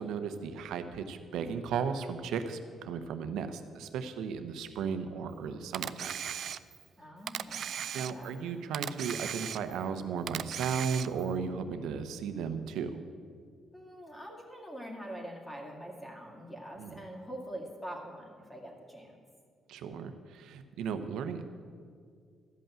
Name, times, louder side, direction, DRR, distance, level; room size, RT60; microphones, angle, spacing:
voice 1, 0.0-6.1 7.9-12.9 16.8-17.0 19.7-21.4, right 6 dB, 85° right, 9 dB, 0.8 m, -35 dB
Camera, 5.7-6.9 7.3-8.4 8.7-9.9 10.3-11.3, right 9 dB, 65° right, 0.3 m, -37 dB
voice 2, 7.0-8.4 13.7-19.2, equal, 15° left, -1 dB, 2.2 m, -44 dB
13.0 x 5.5 x 8.9 m, 2.1 s
cardioid pair, 90°, 0 cm